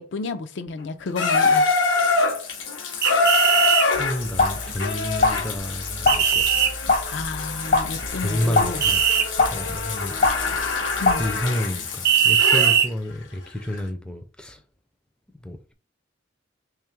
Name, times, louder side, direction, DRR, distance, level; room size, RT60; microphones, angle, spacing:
voice 1, 0.0-1.7 7.0-8.8 11.0-11.2, left 3 dB, 70° left, 0.4 m, -31 dB
Water tap faucet / Bathtub (filling or washing), 1.2-12.8 13.7-13.8, left 3 dB, 85° left, 0.8 m, -25 dB
sound 1, 3.0-3.9 6.1-6.7 8.8-9.3 12.0-12.9, right 9 dB, 55° right, 0.5 m, -19 dB
sound 2, 3.9-11.4, left 3 dB, 55° left, 0.8 m, -24 dB
voice 2, 3.9-6.7 8.2-9.0 9.5-10.1 11.2-14.6 15.4-15.7, left 1 dB, 5° left, 0.4 m, -30 dB
3.3 x 2.4 x 4.4 m
head